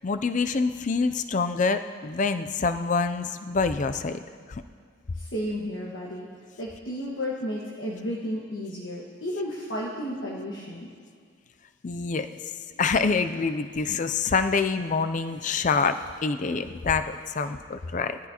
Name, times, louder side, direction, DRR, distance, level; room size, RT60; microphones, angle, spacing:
voice 1, 0.0-4.2 4.5-4.6 11.8-12.5 12.8-18.2, left 4 dB, 40° left, 9 dB, 0.4 m, -26 dB
voice 2, 5.1-6.3 6.6-10.9, equal, 60° left, -5 dB, 1.6 m, -33 dB
20.5 x 14.0 x 2.9 m, 2.1 s
head